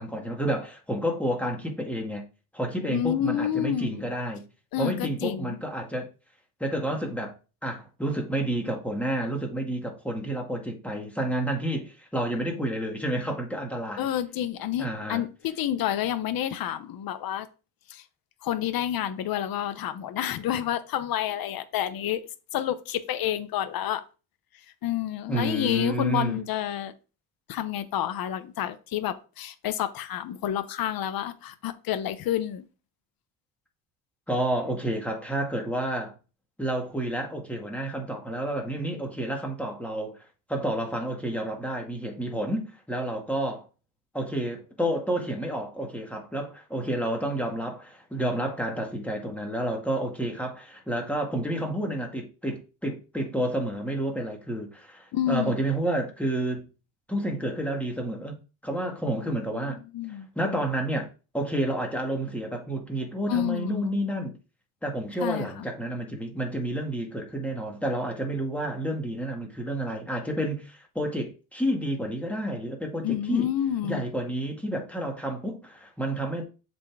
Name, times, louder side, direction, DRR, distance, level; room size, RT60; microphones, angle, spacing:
voice 1, 0.0-2.2 2.5-4.4 4.8-6.1 6.6-7.3 7.6-14.1 14.8-15.2 25.3-26.4 34.3-36.1 36.6-43.7 44.1-56.7 57.1-59.8 60.1-61.1 61.3-64.3 64.8-73.5 73.8-76.4, right 1 dB, 5° left, 2.2 m, -30 dB
voice 2, 2.9-4.0 4.7-5.6 14.0-17.5 17.9-18.0 18.4-24.0 24.8-26.9 27.5-32.6 55.1-55.5 59.1-60.3 63.3-64.0 65.2-65.7 73.0-74.0, left 11 dB, 65° left, 1.0 m, -29 dB
7.3 x 4.5 x 4.8 m
cardioid pair, 115°, 38 cm